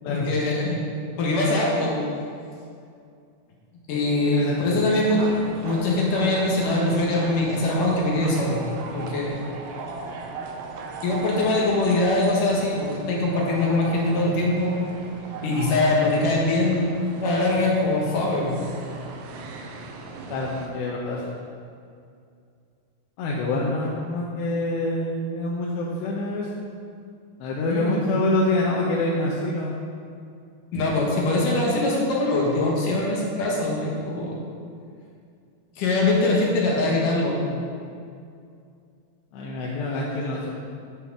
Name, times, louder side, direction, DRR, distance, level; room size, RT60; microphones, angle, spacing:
voice 1, 0.1-0.9 1.2-2.0 3.9-5.2 5.6-8.6 8.9-9.6 11.0-14.7 15.4-18.6 27.7-28.0 30.7-34.4 35.8-37.5, left 2 dB, 60° left, -3 dB, 2.5 m, -23 dB
voice 2, 3.9-4.8 20.3-21.2 23.2-26.5 27.4-29.8 30.9-31.1 39.3-40.5, left 2 dB, 80° left, -4 dB, 3.2 m, -26 dB
sound 1, 5.0-20.7, right 4 dB, 80° right, 3.0 m, -38 dB
11.5 x 6.9 x 6.2 m, 2.4 s
omnidirectional pair, 5.1 m